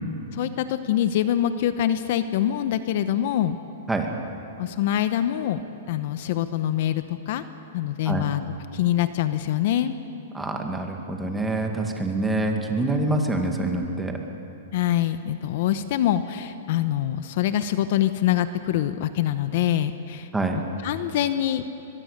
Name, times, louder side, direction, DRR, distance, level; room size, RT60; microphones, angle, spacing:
voice 1, 0.3-3.6 4.6-5.6 5.9-7.4 7.7-8.4 8.7-10.0 14.7-20.3 20.8-21.6, left 11 dB, 55° left, 11 dB, 1.0 m, -24 dB
voice 2, 10.3-14.2 20.3-20.6, right 2 dB, 5° right, 2 dB, 2.2 m, -26 dB
23.0 x 22.5 x 6.8 m, 3.0 s
hypercardioid pair, 145°, 0 cm